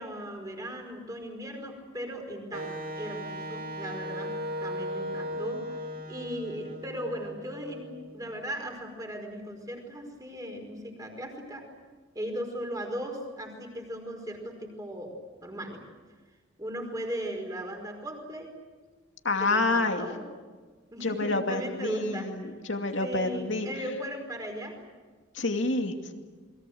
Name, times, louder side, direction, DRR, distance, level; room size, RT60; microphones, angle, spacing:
voice 1, 0.0-4.3 4.6-11.7 12.1-15.1 15.4-15.8 16.6-18.5 19.4-20.2 20.9-22.3 23.0-24.8, equal, 15° right, 3 dB, 5.0 m, -37 dB
Wind instrument woodwind instrument, 2.5-8.4, equal, 45° right, 2.5 m, -37 dB
voice 2, 19.2-20.1 21.0-23.7 25.3-26.1, left 2 dB, 65° left, 4 dB, 2.5 m, -28 dB
28.5 x 22.0 x 7.9 m, 1.4 s
head